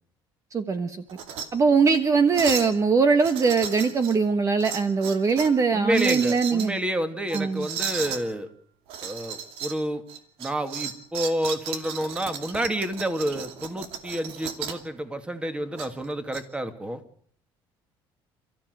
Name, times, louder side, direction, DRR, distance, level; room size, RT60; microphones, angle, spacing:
voice 1, 0.5-1.0 1.5-6.7 7.3-7.7, right 5 dB, 35° right, 10 dB, 1.4 m, -21 dB
sound 1, 1.1-1.5 1.8-2.0 2.3-2.8 3.2-4.2 4.6-5.6 5.9-6.7 7.3-8.2 8.9-9.8 10.1-14.9 15.8-16.4, right 7 dB, 80° right, 2.5 m, -34 dB
voice 2, 5.7-8.5 9.0-10.0 10.4-17.0, right 1 dB, 10° right, 9 dB, 2.3 m, -29 dB
28.5 x 14.0 x 8.0 m, 0.62 s
cardioid pair, 115°, 10 cm